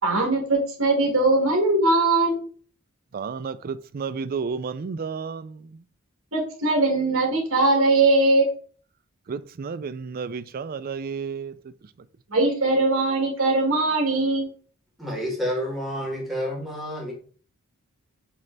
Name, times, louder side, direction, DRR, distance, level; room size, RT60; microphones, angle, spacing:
voice 1, 0.0-2.4 6.3-8.4 12.3-14.5, right 2 dB, 65° right, 2.1 m, -21 dB
voice 2, 3.1-5.6 9.3-11.5, right 5 dB, 45° right, 0.4 m, -31 dB
voice 3, 15.0-17.1, equal, ahead, 2.1 m, -29 dB
7.4 x 3.3 x 3.9 m
head